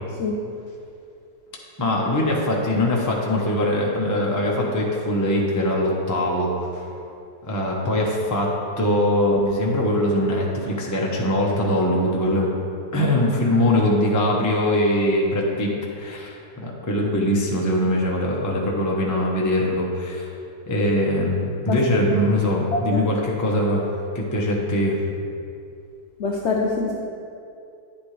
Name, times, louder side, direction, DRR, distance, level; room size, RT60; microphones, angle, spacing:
voice 1, 1.8-6.9 7.4-12.5 12.9-20.3 20.7-23.9 24.1-25.0, left 1 dB, 15° left, -3 dB, 0.6 m, -22 dB
voice 2, 22.7-23.1 26.2-27.0, left 3 dB, 80° left, -1 dB, 0.6 m, -24 dB
10.0 x 8.3 x 3.3 m, 2.6 s
omnidirectional pair, 2.0 m